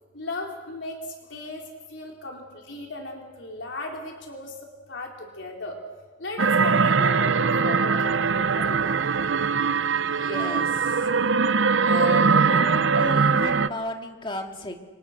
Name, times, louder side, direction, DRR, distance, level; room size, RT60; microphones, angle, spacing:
voice 1, 0.1-1.0 1.3-1.6 1.9-4.5 4.9-5.8 6.2-8.8, left 2 dB, 70° left, 0 dB, 4.1 m, -36 dB
sound 1, 6.4-13.7, right 5 dB, 75° right, 0.8 m, -21 dB
voice 2, 10.0-10.7 11.9-14.8, left 2 dB, 25° left, 3 dB, 2.5 m, -34 dB
29.5 x 25.0 x 6.7 m, 1.2 s
head